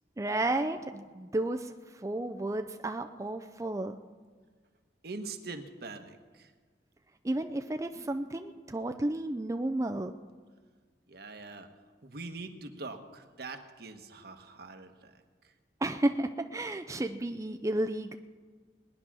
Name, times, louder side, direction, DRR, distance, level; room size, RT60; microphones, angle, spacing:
voice 1, 0.2-4.0 7.2-10.1 15.8-18.1, right 1 dB, 20° right, 6 dB, 0.5 m, -32 dB
voice 2, 5.0-6.5 11.1-11.7 12.0-15.5, right 3 dB, 60° right, 6 dB, 1.3 m, -43 dB
20.5 x 9.9 x 6.2 m, 1.5 s
head